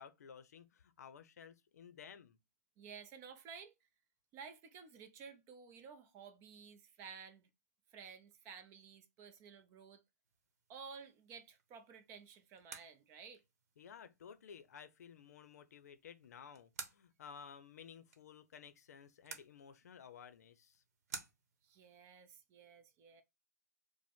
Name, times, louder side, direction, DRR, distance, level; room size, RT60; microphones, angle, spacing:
voice 1, 0.0-2.4 13.8-20.8, left 7 dB, 65° left, 0.6 m, -55 dB
voice 2, 2.8-3.9 4.3-7.5 7.9-10.0 10.7-13.4 21.6-23.2, right 6 dB, 25° right, 0.6 m, -54 dB
sound 1, 10.2-22.0, right 5 dB, 55° right, 1.0 m, -56 dB
4.9 x 2.1 x 3.5 m
hypercardioid pair, 140°, 9 cm